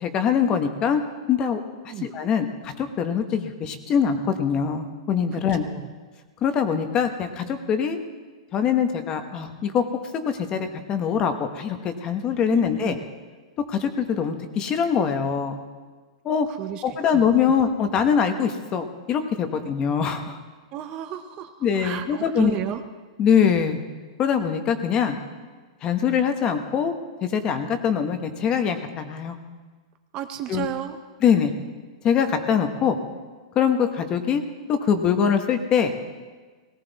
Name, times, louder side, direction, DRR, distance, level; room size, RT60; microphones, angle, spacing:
voice 1, 0.0-1.0 1.3-1.6 2.0-5.7 6.4-8.0 8.5-9.8 10.5-13.0 13.7-15.6 16.2-16.5 16.8-20.4 21.6-22.6 23.2-23.8 24.2-25.2 25.8-26.9 27.2-29.4 30.5-30.7 31.2-31.5 32.0-33.0 33.5-34.4 34.7-35.9, left 7 dB, 25° left, 7 dB, 1.1 m, -23 dB
voice 2, 5.3-5.9 12.5-13.0 16.5-16.8 17.1-17.3 20.7-22.8 30.1-31.0, right 11 dB, 30° right, 8 dB, 0.8 m, -33 dB
18.0 x 17.0 x 4.1 m, 1.4 s
hypercardioid pair, 155°, 3 cm